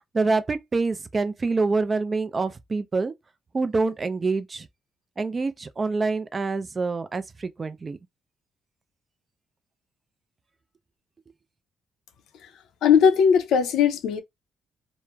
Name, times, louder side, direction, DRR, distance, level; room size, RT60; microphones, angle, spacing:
voice 1, 0.1-3.1 3.5-4.7 5.2-8.0, right 3 dB, 30° right, 0.4 m, -26 dB
voice 2, 12.8-14.2, left 7 dB, 80° left, 0.5 m, -18 dB
3.0 x 2.0 x 2.2 m
cardioid pair, 90°, 0 cm